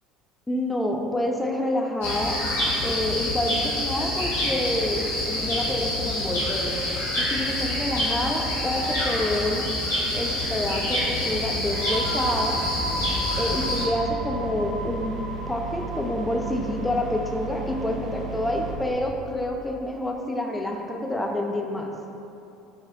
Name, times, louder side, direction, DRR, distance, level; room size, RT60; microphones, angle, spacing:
voice 1, 0.5-2.4 2.8-6.8 7.2-9.7 10.1-12.6 13.4-21.9, left 1 dB, 10° left, 2 dB, 0.4 m, -28 dB
sound 1, 2.0-13.8, left 1 dB, 75° left, 1.0 m, -27 dB
sound 2, 11.5-19.0, right 1 dB, 25° right, 1.2 m, -35 dB
sound 3, 12.7-18.7, right 3 dB, 55° right, 0.8 m, -36 dB
4.8 x 2.7 x 2.4 m, 2.8 s
figure-of-eight pair, 65°, 0 cm